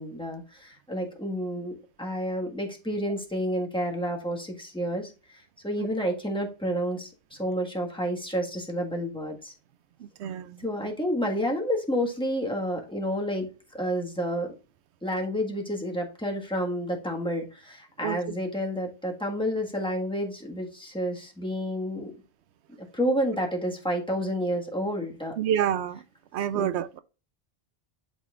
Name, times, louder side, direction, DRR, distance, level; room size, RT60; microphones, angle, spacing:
voice 1, 0.0-1.7 2.0-5.1 5.6-9.5 10.6-14.5 15.0-22.1 22.9-25.4 26.5-26.7, equal, 5° left, 1.4 m, -30 dB
voice 2, 10.0-10.7 18.0-18.3 25.4-26.0 26.3-27.0, right 10 dB, 85° right, 0.9 m, -29 dB
11.0 x 4.2 x 2.4 m
omnidirectional pair, 1.1 m